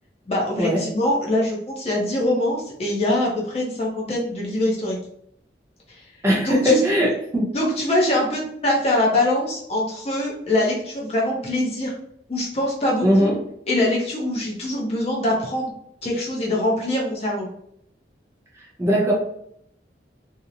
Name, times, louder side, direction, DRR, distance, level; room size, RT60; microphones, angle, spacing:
voice 1, 0.3-5.0 5.9-6.0 6.4-6.8 7.5-12.0 12.3-13.3 13.7-15.7 16.0-17.5, left 1 dB, 35° left, -3 dB, 0.5 m, -23 dB
voice 2, 6.2-7.5 13.0-13.3 18.8-19.1, equal, 15° right, -4 dB, 0.6 m, -19 dB
2.8 x 2.0 x 2.5 m, 0.69 s
head